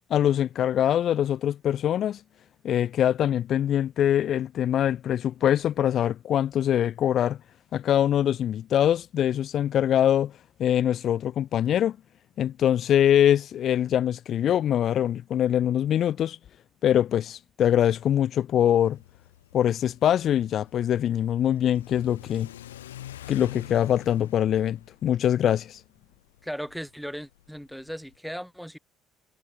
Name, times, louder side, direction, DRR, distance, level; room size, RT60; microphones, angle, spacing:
voice 1, 0.1-2.2 2.6-7.4 7.7-10.3 10.6-12.0 12.4-16.4 16.8-19.0 19.5-22.5 23.3-25.8, left 10 dB, 55° left, 0.5 m, -23 dB
Car / Accelerating revving vroom, 18.7-28.2, left 12 dB, 85° left, 0.8 m, -46 dB
voice 2, 26.4-28.8, equal, ahead, 2.5 m, -37 dB
hypercardioid pair, 55°, 0 cm